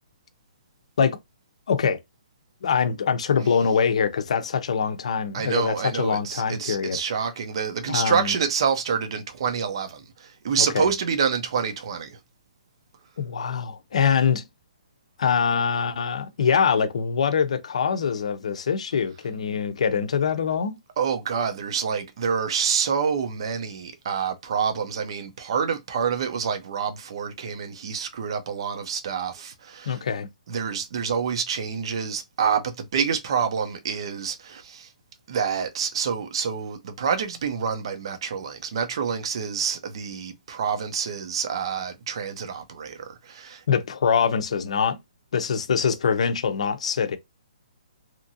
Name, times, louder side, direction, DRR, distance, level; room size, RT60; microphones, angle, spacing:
voice 1, 1.7-2.0 2.6-7.0 7.9-8.4 10.6-10.9 13.2-14.4 15.2-20.8 29.9-30.3 43.7-45.0 45.3-47.2, left 6 dB, 55° left, 0.6 m, -24 dB
voice 2, 5.3-12.2 21.0-30.0 30.5-34.9 35.3-43.6, right 6 dB, 40° right, 0.6 m, -27 dB
2.8 x 2.6 x 2.6 m
hypercardioid pair, 175°, 4 cm